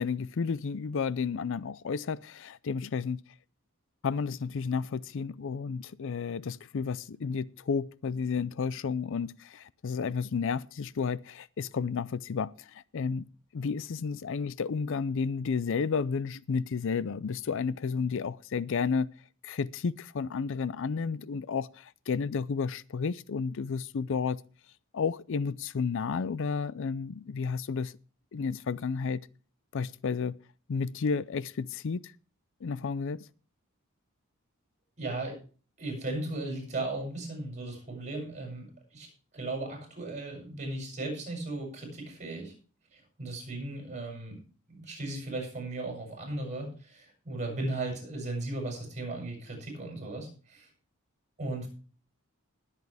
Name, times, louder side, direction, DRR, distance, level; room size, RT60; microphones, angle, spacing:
voice 1, 0.0-3.2 4.0-13.3 13.5-19.1 19.4-24.4 24.9-27.9 28.3-29.2 29.7-30.4 30.7-32.1 32.6-33.3, left 5 dB, 60° left, 0.4 m, -32 dB
voice 2, 35.0-35.4 35.8-39.1 39.3-42.5 42.9-44.4 44.7-50.7 51.4-51.7, right 2 dB, 35° right, 7.3 m, -36 dB
20.0 x 8.4 x 3.4 m
head